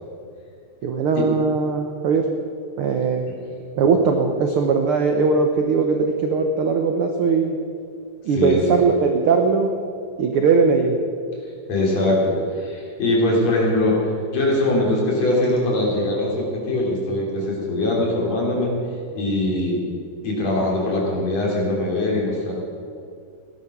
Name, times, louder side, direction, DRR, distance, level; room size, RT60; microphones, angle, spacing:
voice 1, 0.8-2.3 2.8-3.3 3.8-7.6 8.2-9.7 10.2-11.0, right 4 dB, 75° right, 4 dB, 1.2 m, -19 dB
voice 2, 8.3-8.6 11.7-18.7 19.1-19.8 20.2-22.5, left 1 dB, 55° left, -3 dB, 4.2 m, -22 dB
16.5 x 11.5 x 6.0 m, 2.4 s
omnidirectional pair, 3.7 m